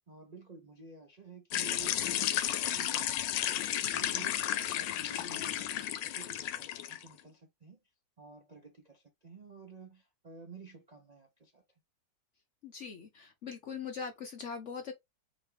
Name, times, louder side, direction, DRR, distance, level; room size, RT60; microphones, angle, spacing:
voice 1, 0.1-7.8 8.2-11.6, right 4 dB, 75° right, 0.3 m, -52 dB
sound 1, 1.5-7.1, left 12 dB, 80° left, 1.3 m, -33 dB
voice 2, 12.6-14.9, left 6 dB, 60° left, 0.8 m, -41 dB
4.1 x 3.3 x 3.3 m
omnidirectional pair, 2.0 m